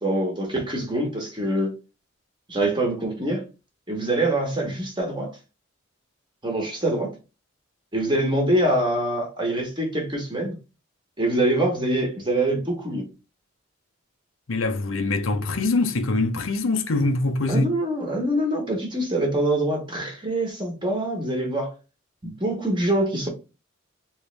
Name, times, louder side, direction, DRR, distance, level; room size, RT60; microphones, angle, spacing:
voice 1, 0.0-1.7 2.5-3.4 3.9-5.4 6.4-7.1 7.9-10.5 11.2-13.0 17.5-21.7 22.2-23.3, right 1 dB, 20° right, 1.1 m, -24 dB
voice 2, 14.5-17.7, left 2 dB, 75° left, 0.6 m, -23 dB
3.2 x 3.1 x 3.2 m
head